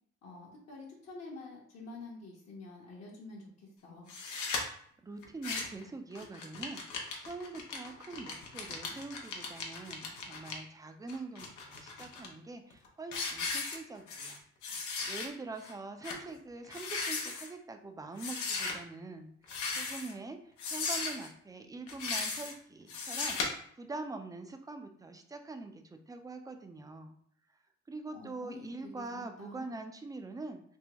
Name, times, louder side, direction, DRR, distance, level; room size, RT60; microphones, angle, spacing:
voice 1, 0.2-4.1 28.1-29.7, left 2 dB, 55° left, -3 dB, 0.9 m, -48 dB
sound 1, 4.1-4.6 5.2-5.8 6.1-10.5 11.1-12.3 12.7-12.9 13.1-14.4 14.6-15.3 15.6-15.7 16.0-16.2 16.6-17.5 18.2-18.7 19.4-20.1 20.6-21.3 21.9-22.5 22.9-23.5, left 4 dB, 80° left, 0.7 m, -37 dB
voice 2, 5.0-14.4 15.1-23.4 23.8-27.2 27.9-30.6, right 3 dB, 10° right, 6 dB, 0.4 m, -44 dB
3.5 x 2.1 x 2.9 m, 0.65 s
cardioid pair, 90°, 30 cm